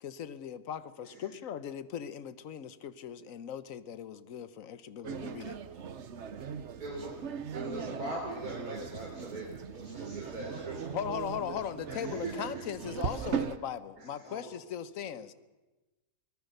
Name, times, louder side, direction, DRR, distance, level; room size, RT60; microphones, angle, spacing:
voice 1, 0.0-5.6 10.9-15.3, left 9 dB, 65° left, 1.3 m, -39 dB
sound 1, 5.0-13.6, right 7 dB, 55° right, 1.1 m, -39 dB
voice 2, 6.8-7.1 7.5-10.8 11.9-12.7 14.0-14.1, right 2 dB, 80° right, 4.1 m, -40 dB
voice 3, 9.9-11.5 12.0-12.3 14.2-15.4, right 1 dB, 15° left, 8.2 m, -52 dB
23.5 x 19.0 x 6.7 m
omnidirectional pair, 1.6 m